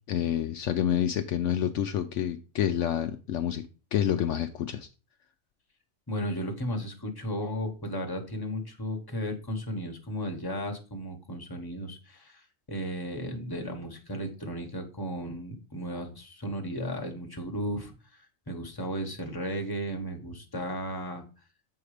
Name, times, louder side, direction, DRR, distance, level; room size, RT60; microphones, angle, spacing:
voice 1, 0.1-3.7 3.9-4.9, left 10 dB, 70° left, 0.9 m, -28 dB
voice 2, 6.1-12.4 12.7-17.9 18.5-21.2, equal, 20° left, 1.3 m, -34 dB
7.1 x 4.7 x 4.9 m
omnidirectional pair, 1.4 m